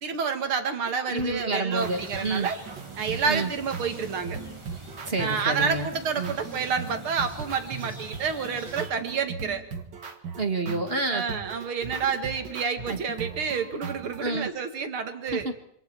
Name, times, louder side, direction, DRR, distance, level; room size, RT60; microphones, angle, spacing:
voice 1, 0.0-2.6 3.0-4.4 5.2-9.6 11.1-15.5, right 6 dB, 75° right, 7 dB, 2.8 m, -29 dB
sound 1, 0.9-14.4, right 5 dB, 55° right, 2.4 m, -39 dB
voice 2, 1.1-2.5 3.3-3.5 5.0-5.9 6.2-6.3 10.4-11.2 12.9-13.0 14.2-14.5 15.3-15.5, right 3 dB, 30° right, 6 dB, 1.6 m, -28 dB
sound 2, 1.8-8.9, right 2 dB, 15° right, 2.2 m, -44 dB
26.5 x 26.5 x 4.6 m, 0.70 s
omnidirectional pair, 2.4 m